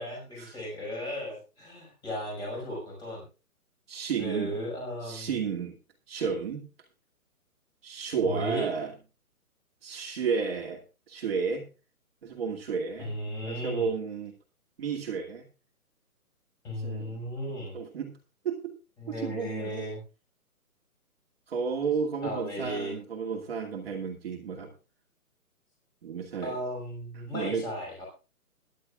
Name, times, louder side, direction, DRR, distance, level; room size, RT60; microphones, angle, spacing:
voice 1, 0.0-3.3 4.2-5.4 8.2-8.6 13.0-13.9 16.6-17.8 19.0-20.0 22.2-22.9 26.4-28.1, equal, 10° left, -1 dB, 5.4 m, -35 dB
voice 2, 3.9-4.6 5.0-5.8 6.1-6.6 7.8-8.9 9.8-10.8 11.1-11.7 12.2-13.2 13.4-14.3 14.8-15.5 16.8-17.2 17.7-18.2 18.4-18.7 19.1-19.8 21.5-24.7 26.0-26.6 27.2-27.7, right 6 dB, 40° right, 1 dB, 2.4 m, -32 dB
22.0 x 11.0 x 2.4 m, 0.32 s
hypercardioid pair, 165°, 45 cm